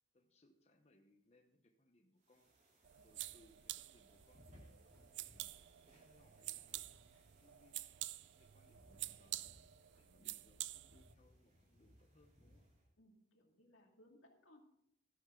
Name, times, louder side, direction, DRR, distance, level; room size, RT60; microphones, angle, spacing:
voice 1, 0.1-2.5 3.0-5.5 5.8-7.0 7.4-7.8 8.3-9.6 9.9-12.6, left 1 dB, 35° left, 4 dB, 0.9 m, -71 dB
sound 1, 2.2-12.9, equal, 40° right, 3.4 m, -67 dB
sound 2, 2.8-11.1, right 16 dB, 65° right, 0.4 m, -49 dB
voice 2, 13.0-14.6, left 1 dB, 90° left, 2 dB, 2.4 m, -66 dB
12.5 x 11.5 x 3.8 m, 0.75 s
head